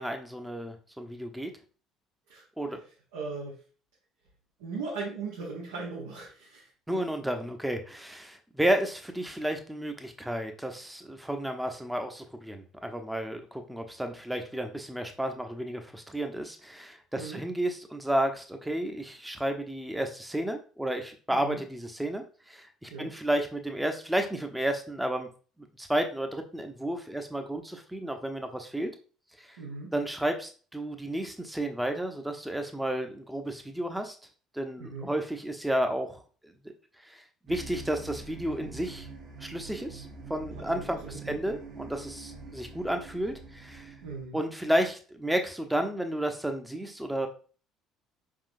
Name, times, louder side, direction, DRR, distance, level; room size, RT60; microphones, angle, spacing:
voice 1, 0.0-1.5 2.6-2.8 6.9-25.3 25.8-28.9 29.4-29.6 29.9-34.2 34.5-36.2 37.0-39.1 39.4-43.9 44.3-47.3, right 1 dB, 5° right, 5 dB, 0.7 m, -32 dB
voice 2, 3.1-3.6 4.6-7.0 17.2-17.4 21.3-21.6 22.9-23.1 29.6-29.9 34.8-35.1 40.7-41.4 44.0-44.4, right 4 dB, 70° right, -4 dB, 0.9 m, -38 dB
sound 1, 37.5-44.3, right 3 dB, 55° right, 1.3 m, -45 dB
4.8 x 3.7 x 2.6 m, 0.38 s
figure-of-eight pair, 55°, 0 cm